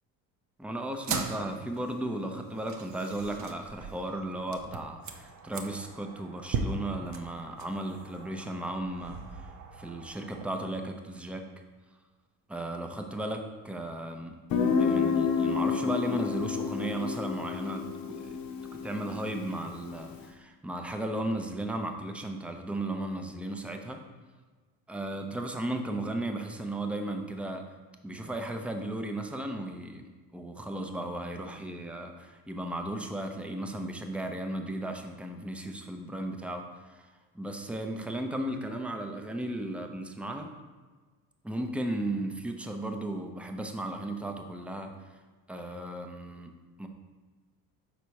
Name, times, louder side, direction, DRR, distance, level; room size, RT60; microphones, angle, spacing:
voice 1, 0.6-11.5 12.5-14.4 14.8-18.4 18.7-24.0 24.9-27.6 28.0-37.0 37.3-40.5 41.4-44.9 45.5-46.5 46.8-46.9, right 1 dB, 5° right, 4 dB, 0.6 m, -35 dB
sound 1, 0.9-10.5, right 5 dB, 45° right, 0.7 m, -39 dB
Guitar, 14.5-20.1, left 6 dB, 60° left, 0.8 m, -29 dB
5.7 x 4.1 x 4.7 m, 1.4 s
supercardioid pair, 80°, 40 cm